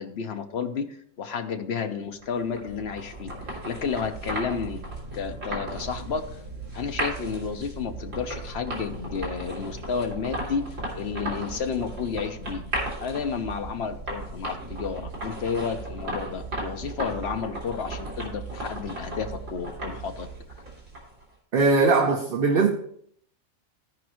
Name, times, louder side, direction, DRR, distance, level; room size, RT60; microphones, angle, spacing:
voice 1, 0.0-3.3 3.6-4.8 5.1-6.3 6.7-12.6 13.0-20.3, left 6 dB, 60° left, 1.1 m, -31 dB
sound 1, 2.2-21.2, right 2 dB, 70° right, 2.9 m, -35 dB
voice 2, 21.5-22.7, right 4 dB, 50° right, 0.9 m, -20 dB
15.5 x 5.2 x 3.0 m
omnidirectional pair, 1.3 m